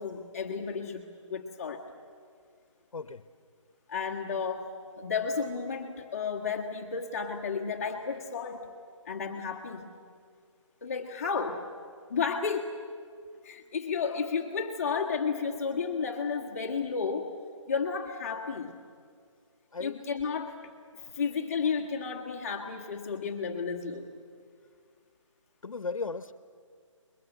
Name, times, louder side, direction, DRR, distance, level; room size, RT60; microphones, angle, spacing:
voice 1, 0.0-1.8 3.9-8.6 9.0-9.9 10.8-11.6 12.1-12.7 13.4-17.3 17.7-18.7 19.8-20.5 21.1-24.0, left 5 dB, 30° left, 0 dB, 1.6 m, -32 dB
voice 2, 25.6-26.3, left 4 dB, 80° left, 13 dB, 1.0 m, -36 dB
26.5 x 22.5 x 8.0 m, 2.2 s
hypercardioid pair, 170°, 17 cm